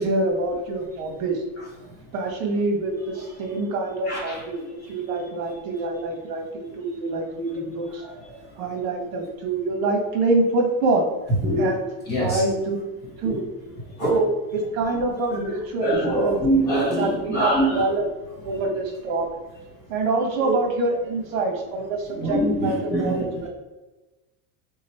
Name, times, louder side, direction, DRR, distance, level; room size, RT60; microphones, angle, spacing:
voice 1, 0.0-1.4 2.1-8.0 8.6-11.1 11.6-11.8 12.2-12.8 13.2-13.4 14.0-16.4 17.0-18.0 18.4-19.3 19.9-23.5, right 2 dB, 65° right, 2 dB, 1.3 m, -25 dB
voice 2, 3.1-3.5 4.0-4.4 7.8-8.6 11.4-11.7 12.1-12.4 13.0-13.4 13.9-14.1 15.8-17.9 18.5-18.6 20.4-20.5 22.1-23.5, right 1 dB, 20° left, -4 dB, 1.2 m, -25 dB
3.8 x 3.1 x 4.2 m, 1.1 s
supercardioid pair, 165°, 44 cm